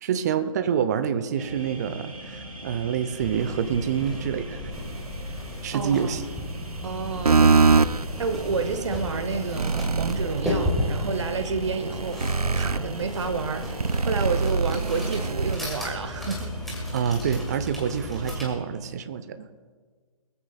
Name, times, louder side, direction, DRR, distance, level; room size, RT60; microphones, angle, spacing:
voice 1, 0.0-4.6 5.6-6.2 16.9-19.5, right 8 dB, 30° right, 11 dB, 0.7 m, -27 dB
sound 1, 1.4-18.9, right 1 dB, 70° right, 3.6 m, -42 dB
sound 2, 3.2-18.4, left 1 dB, ahead, 1.8 m, -34 dB
voice 2, 5.7-6.1 6.8-7.7 8.2-13.8 14.0-16.5, right 5 dB, 50° right, 9 dB, 1.1 m, -30 dB
sound 3, 7.2-15.6, right 4 dB, 90° right, 0.4 m, -24 dB
21.5 x 14.5 x 2.4 m, 1.5 s
figure-of-eight pair, 135°, 19 cm